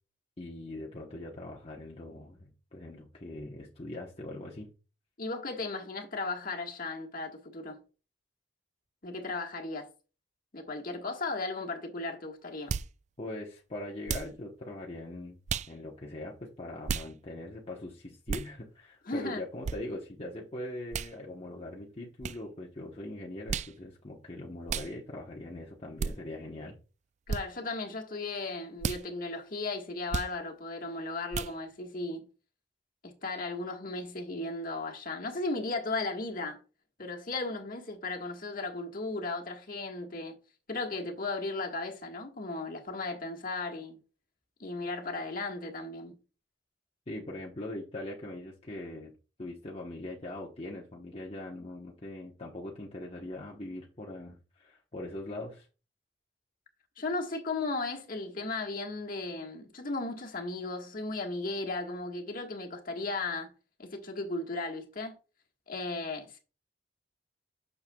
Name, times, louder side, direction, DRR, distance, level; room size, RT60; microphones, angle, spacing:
voice 1, 0.4-4.7 13.2-15.4 15.7-26.8 47.1-49.1 49.4-55.7, left 1 dB, 35° left, 1.0 m, -41 dB
voice 2, 5.2-7.8 9.0-9.9 10.5-12.7 19.1-19.4 27.3-32.2 33.0-36.6 37.0-40.3 40.7-44.0 44.6-46.2 57.0-63.5 63.8-65.1 65.7-66.4, left 3 dB, 50° left, 1.5 m, -36 dB
sound 1, 12.7-12.9 14.1-14.4 15.5-15.7 16.9-17.1 18.3-18.5 19.6-19.8 20.9-21.1 22.2-22.4 23.5-23.7 24.7-24.9 26.0-26.1 27.3-27.4 28.8-29.0 30.1-30.3 31.3-31.5, right 6 dB, 40° right, 0.3 m, -33 dB
8.8 x 6.7 x 2.3 m
head